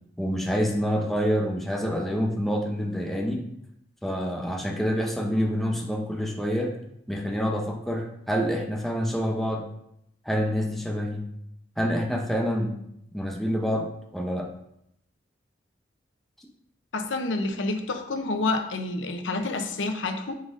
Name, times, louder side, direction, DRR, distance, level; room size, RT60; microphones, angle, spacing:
voice 1, 0.2-3.4 4.0-6.7 7.1-9.6 10.2-11.2 11.8-12.7 13.1-14.5, equal, ahead, 0 dB, 0.7 m, -27 dB
voice 2, 16.9-20.3, left 3 dB, 90° left, 5 dB, 0.7 m, -28 dB
9.5 x 3.9 x 2.6 m, 0.76 s
head